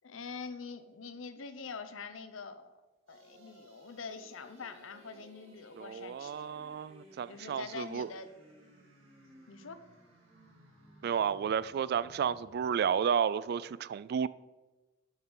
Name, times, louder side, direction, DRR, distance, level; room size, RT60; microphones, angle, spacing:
voice 1, 0.0-2.7 3.1-6.3 7.3-8.3 9.5-9.9, left 5 dB, 80° left, 0.7 m, -44 dB
sound 1, 3.1-12.8, right 1 dB, 80° right, 2.6 m, -59 dB
voice 2, 5.8-8.1 11.0-14.3, right 7 dB, 55° right, 0.3 m, -32 dB
10.5 x 6.4 x 3.9 m
head